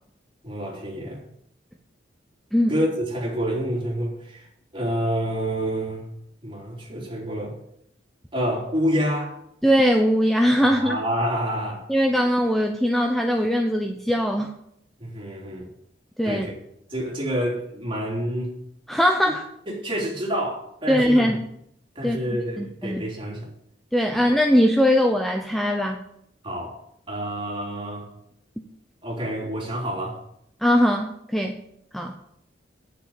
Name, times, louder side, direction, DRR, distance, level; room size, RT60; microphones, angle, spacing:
voice 1, 0.4-1.2 2.7-4.5 4.7-6.1 6.4-7.6 8.3-9.4 10.6-11.9 15.0-15.7 16.2-16.6 16.9-18.5 19.2-19.3 19.7-21.3 22.0-23.5 24.1-24.3 26.4-26.8 27.1-28.1 29.0-30.2, equal, 30° right, 3.7 m, -28 dB
voice 2, 9.6-11.0 11.9-14.5 16.2-16.5 18.9-19.4 20.9-21.4 22.0-23.0 23.9-26.0 30.6-31.6 31.9-32.2, equal, ahead, 0.7 m, -21 dB
9.4 x 7.1 x 8.6 m
head